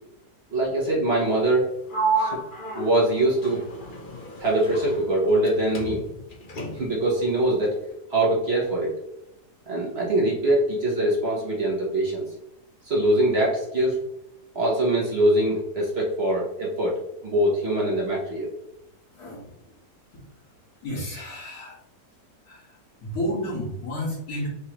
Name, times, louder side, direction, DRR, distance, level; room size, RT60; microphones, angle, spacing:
voice 1, 0.5-1.7 2.1-2.4 2.7-3.6 4.4-6.0 6.7-7.7 8.1-8.9 9.7-12.2 12.8-14.0 14.5-18.5, right 1 dB, 45° right, -3 dB, 1.1 m, -23 dB
Sliding door, 1.9-5.5 5.7-7.1, right 3 dB, 45° left, 0.7 m, -31 dB
voice 2, 20.8-21.8 22.5-22.7 23.0-24.5, equal, 65° left, -6 dB, 2.2 m, -31 dB
4.8 x 3.1 x 3.0 m, 0.86 s
omnidirectional pair, 1.7 m